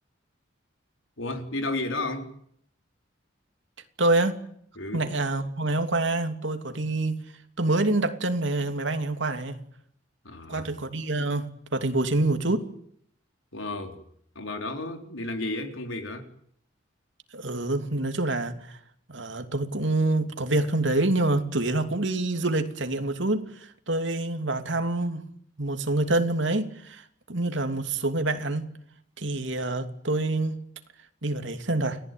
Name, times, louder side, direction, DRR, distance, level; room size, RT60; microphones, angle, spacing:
voice 1, 1.2-2.3 4.8-5.1 10.2-10.7 13.5-14.0 14.3-16.3, left 2 dB, 85° left, 4.3 m, -32 dB
voice 2, 4.0-4.4 4.9-7.2 7.6-9.6 10.5-12.7 17.3-18.8 19.1-25.3 25.6-28.7 29.2-30.6 31.2-32.0, right 2 dB, 70° right, 3.0 m, -26 dB
29.5 x 19.0 x 9.5 m
head